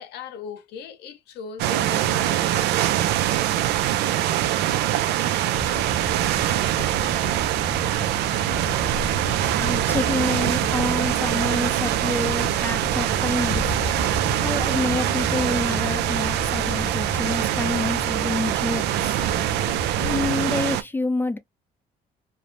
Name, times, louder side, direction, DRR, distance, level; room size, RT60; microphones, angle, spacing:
voice 1, 0.0-2.7 4.0-4.1, left 6 dB, 75° left, 0.8 m, -39 dB
sound 1, 1.6-20.8, right 13 dB, 80° right, 0.4 m, -23 dB
sound 2, 5.5-20.3, left 1 dB, 45° left, 0.9 m, -33 dB
voice 2, 9.5-13.7 14.2-19.2 20.0-21.4, left 2 dB, 10° left, 0.5 m, -28 dB
3.2 x 2.0 x 2.6 m
cardioid pair, 110°, 17 cm